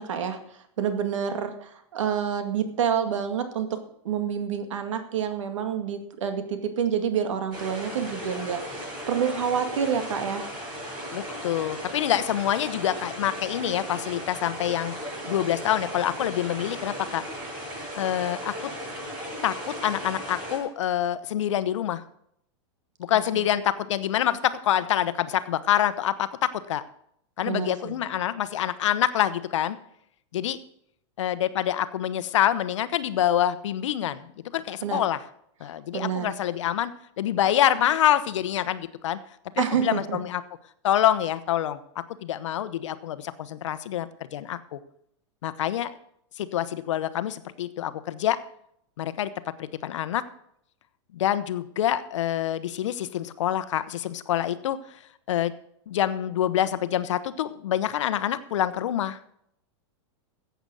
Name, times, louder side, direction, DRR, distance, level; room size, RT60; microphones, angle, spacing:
voice 1, 0.0-3.8 4.0-10.5 23.3-23.5 27.5-27.9 34.8-35.0 35.9-36.3 39.6-40.2, right 8 dB, 85° right, 7 dB, 2.1 m, -28 dB
sound 1, 7.5-20.6, equal, 30° right, 7.0 m, -36 dB
voice 2, 11.1-14.9 15.3-17.2 18.0-18.7 19.4-22.0 23.0-26.8 27.4-29.8 30.3-30.6 31.2-35.2 35.6-36.9 37.2-39.2 39.5-40.4 40.8-41.8 42.2-44.8 45.4-45.9 46.4-48.4 49.0-50.2 51.1-55.0 55.3-55.5 55.9-59.4, left 11 dB, 80° left, 14 dB, 1.0 m, -26 dB
14.5 x 8.1 x 6.4 m, 0.73 s
supercardioid pair, 155°, 15 cm